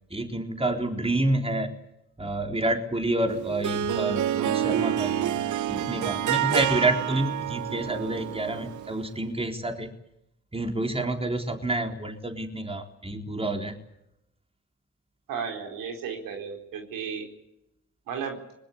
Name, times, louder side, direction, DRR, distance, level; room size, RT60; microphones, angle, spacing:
voice 1, 0.1-1.7 2.2-5.4 5.7-9.9 10.5-13.8, right 2 dB, 15° right, 4 dB, 3.9 m, -28 dB
Harp, 3.3-9.1, right 11 dB, 60° right, 0.8 m, -28 dB
voice 2, 15.3-17.3 18.1-18.4, right 6 dB, 75° right, 3 dB, 4.3 m, -34 dB
24.0 x 20.5 x 8.4 m, 0.83 s
hypercardioid pair, 45°, 34 cm